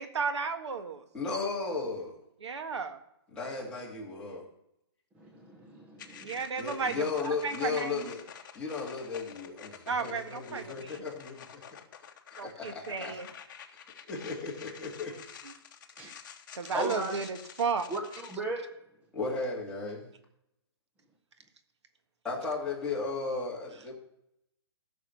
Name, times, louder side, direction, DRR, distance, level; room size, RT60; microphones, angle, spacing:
voice 1, 0.0-1.0 2.4-3.0 6.2-8.0 9.9-11.0 12.4-13.3 16.5-17.9, right 5 dB, 90° right, 8 dB, 1.6 m, -33 dB
voice 2, 1.1-2.1 3.3-4.4 6.6-8.2 8.5-11.6 12.7-13.2 14.1-15.1 19.1-20.1 22.2-23.9, left 4 dB, 5° left, -5 dB, 2.3 m, -35 dB
voice 3, 5.1-6.4 16.0-16.1 16.7-17.2 17.9-18.6, right 1 dB, 10° right, 0 dB, 0.9 m, -36 dB
sound 1, 6.0-18.4, left 8 dB, 45° left, 1.1 m, -49 dB
15.0 x 6.3 x 6.4 m, 0.79 s
hypercardioid pair, 170°, 14 cm